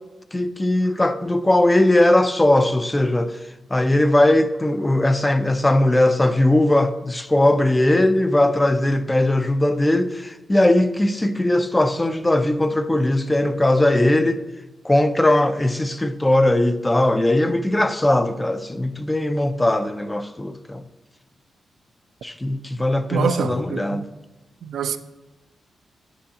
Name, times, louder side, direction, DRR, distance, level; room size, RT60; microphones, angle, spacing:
voice 1, 0.3-3.4 3.7-14.4 14.8-20.8 22.2-24.1, left 1 dB, 15° left, 0.3 m, -19 dB
voice 2, 23.1-24.1 24.6-25.0, right 7 dB, 85° right, 0.3 m, -25 dB
8.8 x 4.6 x 2.8 m
cardioid pair, 110°, 0 cm